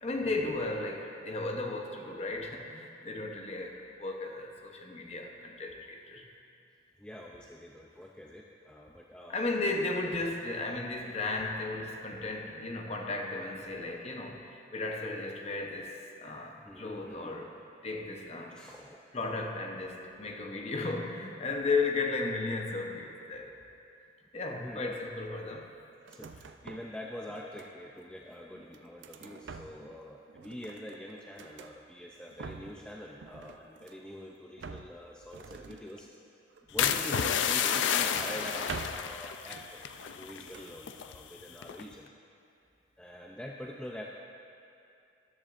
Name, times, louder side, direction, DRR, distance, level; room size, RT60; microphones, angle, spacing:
voice 1, 0.0-6.3 9.3-17.5 17.8-18.6 19.1-23.5 24.3-25.7, left 3 dB, 35° left, 2 dB, 0.8 m, -35 dB
voice 2, 7.0-9.5 16.6-17.5 18.5-19.0 24.6-25.0 26.1-36.1 36.7-39.8 40.1-42.1 43.0-44.2, equal, 5° left, -2 dB, 0.4 m, -45 dB
sound 1, 26.0-27.0 27.3-28.0 28.5-30.0 30.3-31.8 32.2-32.9 33.2-34.1 34.6-37.4 37.7-39.2 39.5-40.2 40.5-40.8, right 4 dB, 75° right, 0.5 m, -46 dB
sound 2, 36.8-40.5 40.8-41.2 41.6-41.9, left 8 dB, 75° left, 0.4 m, -30 dB
13.5 x 10.5 x 2.5 m, 2.5 s
head